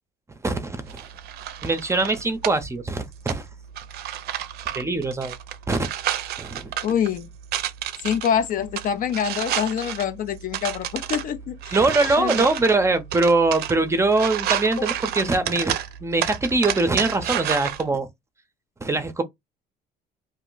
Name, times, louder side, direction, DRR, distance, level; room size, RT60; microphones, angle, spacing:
voice 1, 0.4-1.0 1.6-3.5 4.7-5.3 5.7-5.9 6.4-6.7 11.7-15.7 16.0-18.1 18.8-19.2, right 3 dB, 15° right, 0.5 m, -22 dB
sound 1, 0.9-17.8, right 11 dB, 70° right, 0.4 m, -31 dB
voice 2, 6.8-7.3 8.0-11.8 12.2-12.3 14.8-14.9, left 8 dB, 55° left, 0.4 m, -25 dB
2.5 x 2.0 x 3.8 m
cardioid pair, 110°, 17 cm